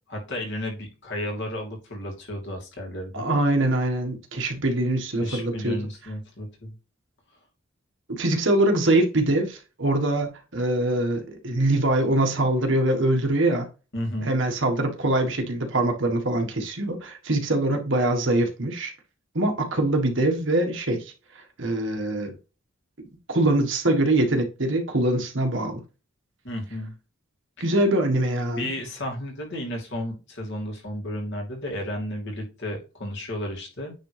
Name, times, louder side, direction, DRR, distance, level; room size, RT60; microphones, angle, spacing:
voice 1, 0.1-3.4 5.2-6.7 13.9-14.3 26.4-26.9 27.6-27.7 28.5-33.9, left 1 dB, 60° left, 2.6 m, -33 dB
voice 2, 3.1-5.8 8.1-13.7 14.2-18.9 19.3-21.1 21.6-22.3 23.3-25.8 27.6-28.7, right 1 dB, 65° right, 1.5 m, -23 dB
9.3 x 3.7 x 3.3 m
head